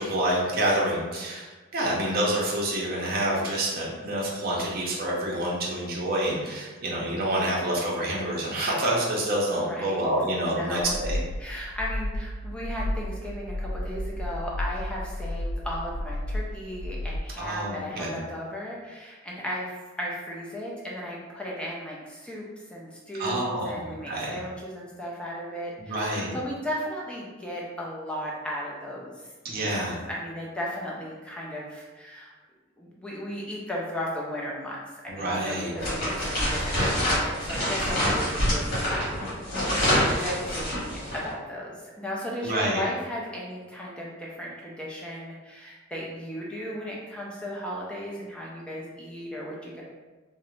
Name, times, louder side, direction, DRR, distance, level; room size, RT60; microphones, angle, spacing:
voice 1, 0.0-11.2 17.4-18.2 23.2-24.4 25.8-26.4 29.4-30.0 35.1-35.7 42.4-42.8, right 1 dB, 50° right, -4 dB, 0.6 m, -27 dB
voice 2, 9.6-10.0 10.4-11.0 11.4-32.3 32.8-39.4 40.1-49.8, equal, 5° left, -4 dB, 0.4 m, -36 dB
sound 1, 10.8-17.2, left 1 dB, 70° left, 0.3 m, -32 dB
sound 2, 35.8-41.3, equal, 55° left, 1.2 m, -26 dB
2.4 x 2.0 x 3.0 m, 1.2 s
head